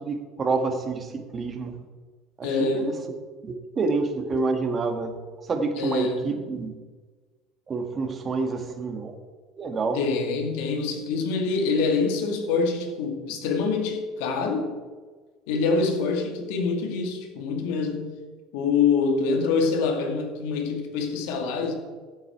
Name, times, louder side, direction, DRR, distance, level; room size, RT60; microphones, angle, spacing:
voice 1, 0.0-1.8 2.4-2.9 3.4-5.2 5.4-6.7 7.7-9.1 9.6-10.0, right 3 dB, 30° right, 5 dB, 1.9 m, -28 dB
voice 2, 2.4-3.0 5.8-6.4 9.9-14.7 15.5-18.1 18.5-21.7, left 4 dB, 80° left, 4 dB, 2.2 m, -25 dB
15.5 x 8.0 x 4.7 m, 1.4 s
supercardioid pair, 100°, 0 cm